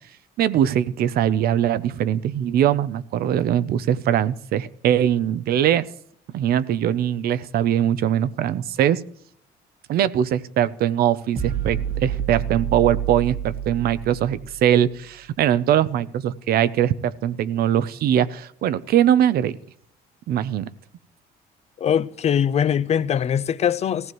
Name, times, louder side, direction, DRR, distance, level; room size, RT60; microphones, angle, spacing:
voice 1, 0.4-5.9 6.3-9.0 9.9-19.6 20.3-20.7, right 10 dB, 65° right, 0.6 m, -21 dB
sound 1, 11.4-14.8, right 9 dB, 35° right, 1.2 m, -28 dB
voice 2, 21.8-24.1, left 8 dB, 40° left, 0.5 m, -22 dB
18.5 x 15.5 x 3.1 m
cardioid pair, 110°, 17 cm